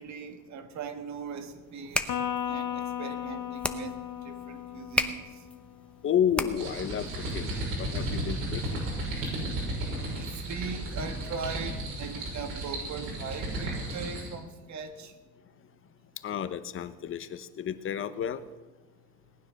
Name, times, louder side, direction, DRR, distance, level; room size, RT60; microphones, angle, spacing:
voice 1, 0.0-5.9 8.8-15.2, right 5 dB, 55° right, 1.6 m, -41 dB
sound 1, 1.7-6.9, left 1 dB, 5° left, 0.8 m, -35 dB
Electric guitar, 2.1-5.6, left 9 dB, 80° left, 1.5 m, -35 dB
voice 2, 6.0-7.1 7.3-7.5 7.8-8.8 16.2-18.4, left 9 dB, 40° left, 0.9 m, -31 dB
sound 2, 6.5-14.3, right 1 dB, 75° right, 6.1 m, -34 dB
19.0 x 9.8 x 6.4 m
cardioid pair, 135°, 33 cm